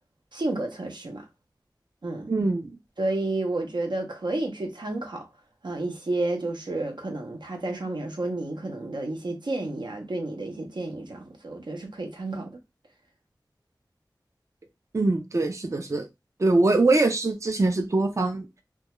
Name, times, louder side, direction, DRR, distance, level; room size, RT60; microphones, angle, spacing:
voice 1, 0.3-1.2 2.0-2.3 3.0-5.3 5.6-12.5, right 2 dB, 80° right, 0.6 m, -31 dB
voice 2, 2.3-2.7 14.9-16.1 16.4-18.5, right 2 dB, 40° right, 0.4 m, -23 dB
2.2 x 2.2 x 2.8 m
wide cardioid pair, 45°, 8 cm